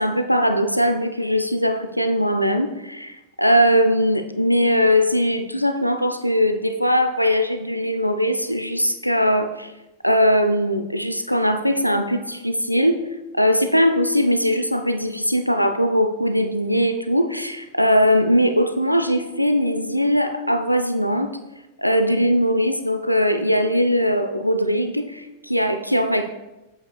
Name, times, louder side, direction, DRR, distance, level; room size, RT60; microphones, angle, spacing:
voice 1, 0.0-9.7 10.0-13.0 13.3-21.3 21.8-26.3, equal, 90° left, 7 dB, 0.5 m, -20 dB
9.3 x 7.6 x 2.3 m, 1.0 s
figure-of-eight pair, 90°, 0 cm